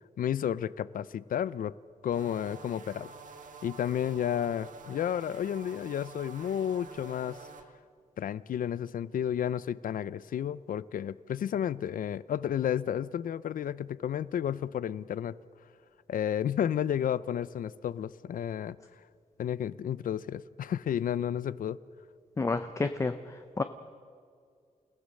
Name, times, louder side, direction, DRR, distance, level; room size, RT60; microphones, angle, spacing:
voice 1, 0.2-1.7 2.0-3.1 3.6-7.4 8.2-15.4 16.1-18.8 19.4-21.8, left 9 dB, 75° left, 18 dB, 0.6 m, -32 dB
sound 1, 2.1-7.6, right 5 dB, 65° right, 1.7 m, -48 dB
voice 2, 22.4-23.6, left 3 dB, 20° left, 9 dB, 0.6 m, -30 dB
29.0 x 17.0 x 6.5 m, 2.2 s
wide cardioid pair, 175°, 14 cm